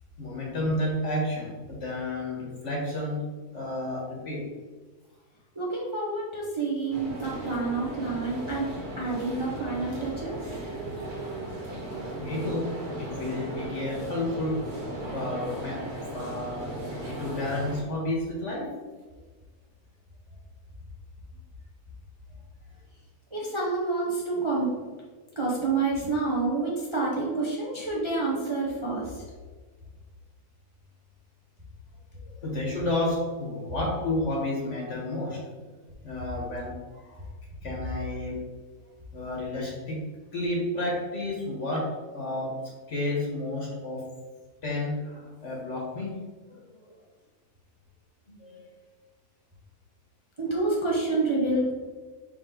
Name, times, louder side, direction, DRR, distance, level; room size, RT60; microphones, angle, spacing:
voice 1, 0.2-3.2 3.5-4.4 12.2-12.7 12.9-14.6 15.1-15.8 16.1-18.7 32.2-35.4 36.0-37.2 37.6-38.4 39.1-40.0 40.3-41.9 42.1-42.5 42.9-44.0 44.6-46.2 46.5-46.8 48.3-48.7, left 1 dB, 50° left, -3 dB, 1.8 m, -31 dB
voice 2, 5.5-10.6 23.3-24.7 25.4-29.2 50.4-51.7, right 3 dB, 20° right, -5 dB, 1.0 m, -28 dB
sound 1, 6.9-17.8, right 1 dB, 70° right, 1.9 m, -36 dB
5.3 x 5.0 x 3.9 m, 1.4 s
omnidirectional pair, 1.7 m